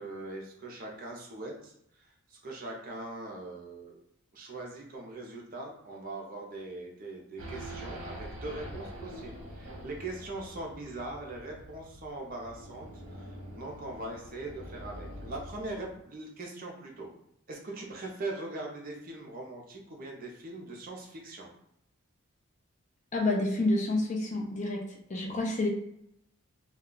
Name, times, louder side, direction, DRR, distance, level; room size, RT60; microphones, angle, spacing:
voice 1, 0.0-4.0 4.3-17.1 17.5-21.5, right 2 dB, 40° right, -1 dB, 0.6 m, -41 dB
Race car auto racing / Idling / Accelerating revving vroom, 7.4-16.0, equal, 65° right, 0.8 m, -45 dB
voice 2, 23.1-24.8 25.1-25.7, left 2 dB, 30° left, 0 dB, 0.5 m, -28 dB
2.3 x 2.2 x 3.7 m, 0.76 s
head